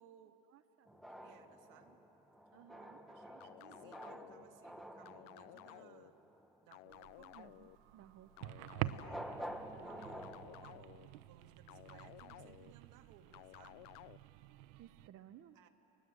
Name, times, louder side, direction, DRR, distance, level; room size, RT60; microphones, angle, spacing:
voice 1, 0.0-0.4 0.9-2.0 2.8-6.2 6.6-7.3 8.8-13.9 15.5-15.7, right 9 dB, 60° right, 4 dB, 2.2 m, -63 dB
voice 2, 0.5-0.9 2.5-3.0 7.3-8.5 14.7-15.6, right 11 dB, 40° right, 8 dB, 0.8 m, -59 dB
sound 1, 0.9-6.6 8.9-10.6, equal, ahead, 1.3 m, -50 dB
sound 2, 3.4-4.5 5.1-6.1 6.7-7.8 8.4-9.4 10.0-11.1 11.7-12.7 13.3-14.2, left 19 dB, 65° left, 0.5 m, -55 dB
sound 3, 6.9-15.1, right 15 dB, 75° right, 0.9 m, -48 dB
30.0 x 22.0 x 7.9 m, 2.9 s
cardioid pair, 130°, 35 cm